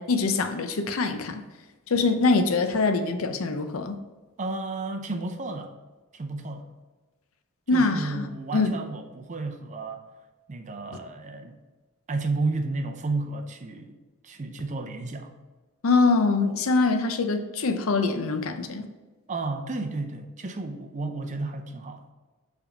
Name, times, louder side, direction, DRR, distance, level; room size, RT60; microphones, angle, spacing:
voice 1, 0.0-1.4 1.9-3.9 7.7-8.3 8.5-8.7 15.8-18.9, left 3 dB, 65° left, 8 dB, 0.6 m, -24 dB
voice 2, 4.4-5.7 6.1-6.7 7.7-10.0 10.5-11.6 12.1-14.0 14.2-15.3 19.3-22.0, right 3 dB, 35° right, 6 dB, 0.5 m, -32 dB
7.2 x 3.5 x 5.0 m, 1.2 s
head